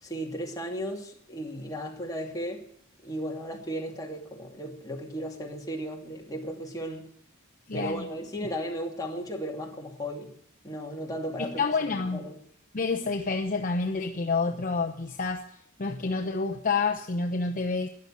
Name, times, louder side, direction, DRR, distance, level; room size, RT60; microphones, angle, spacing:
voice 1, 0.0-2.7 3.0-7.1 7.7-10.3 10.6-12.4, equal, 15° left, 2.6 m, -35 dB
voice 2, 7.7-8.1 11.4-12.2 12.7-17.9, left 4 dB, 40° left, 0.9 m, -29 dB
14.0 x 10.5 x 7.5 m
head